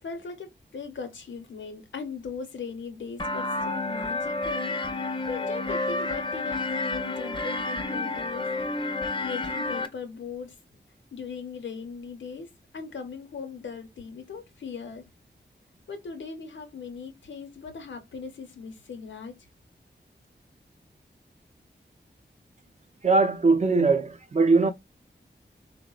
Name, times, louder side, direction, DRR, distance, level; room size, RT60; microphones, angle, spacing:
voice 1, 0.0-4.7 5.3-8.5 9.2-10.6 11.1-12.5 12.7-15.0 15.9-19.3, left 5 dB, 90° left, 0.6 m, -38 dB
sound 1, 3.2-9.9, left 2 dB, 25° left, 0.5 m, -30 dB
voice 2, 23.0-24.7, right 3 dB, 40° right, 0.4 m, -21 dB
3.5 x 2.0 x 2.3 m
wide cardioid pair, 50°, 19 cm